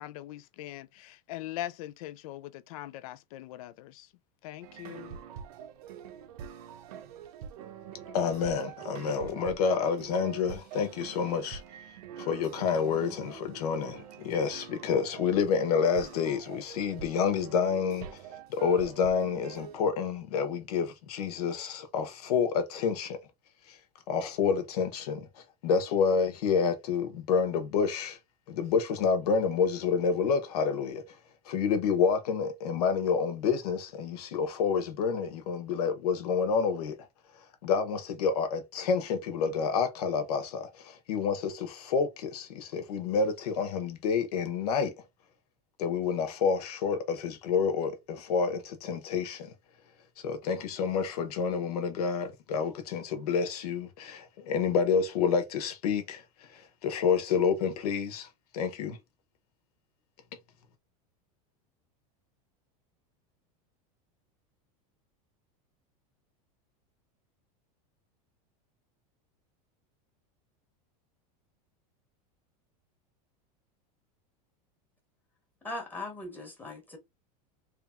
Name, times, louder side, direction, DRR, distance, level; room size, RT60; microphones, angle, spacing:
voice 1, 0.0-4.1 4.4-5.2, left 14 dB, 70° left, 0.4 m, -41 dB
sound 1, 4.6-19.8, right 8 dB, 80° right, 0.8 m, -45 dB
voice 2, 8.1-11.6 12.2-18.1 18.5-23.2 23.7-23.8 24.1-28.2 28.5-31.0 31.4-37.0 37.6-44.9 45.8-49.5 50.2-58.3 58.5-59.0, left 6 dB, 90° left, 1.3 m, -29 dB
voice 3, 75.6-77.0, left 2 dB, 10° left, 1.0 m, -39 dB
3.4 x 2.9 x 3.6 m
supercardioid pair, 165°, 19 cm